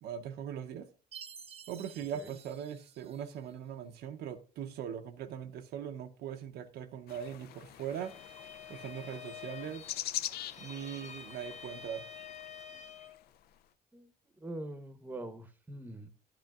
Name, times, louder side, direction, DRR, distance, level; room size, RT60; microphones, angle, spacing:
voice 1, 0.0-0.9 1.7-8.2 8.7-9.9 10.6-12.1, right 9 dB, 75° right, 0.7 m, -40 dB
Chime, 1.1-3.6, right 7 dB, 35° right, 0.5 m, -52 dB
sound 1, 7.1-13.3, left 12 dB, 70° left, 0.4 m, -44 dB
Bowed string instrument, 7.9-13.2, left 6 dB, 45° left, 1.0 m, -48 dB
voice 2, 14.4-16.1, right 1 dB, 10° right, 0.9 m, -43 dB
11.5 x 9.0 x 2.3 m
cardioid pair, 110°, 17 cm